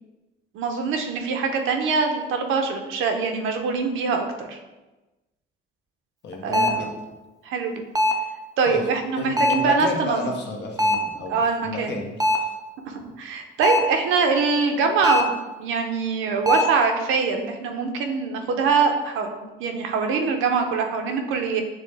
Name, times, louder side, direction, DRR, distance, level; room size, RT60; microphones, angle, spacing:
voice 1, 0.5-4.6 6.4-7.0 7.4-7.8 8.6-10.2 11.3-12.0 12.9-15.3 15.6-21.6, right 5 dB, 85° right, 4 dB, 0.6 m, -23 dB
voice 2, 6.2-6.9 8.7-8.9 9.2-12.5, left 3 dB, 60° left, 1 dB, 0.9 m, -32 dB
sound 1, 6.5-6.9 8.0-8.4 9.4-9.8 10.8-11.2 12.2-12.6 13.6-14.0 15.0-15.4 16.5-16.8, equal, 20° right, 0.4 m, -21 dB
6.1 x 2.1 x 3.3 m, 1.1 s
cardioid pair, 90°, 20 cm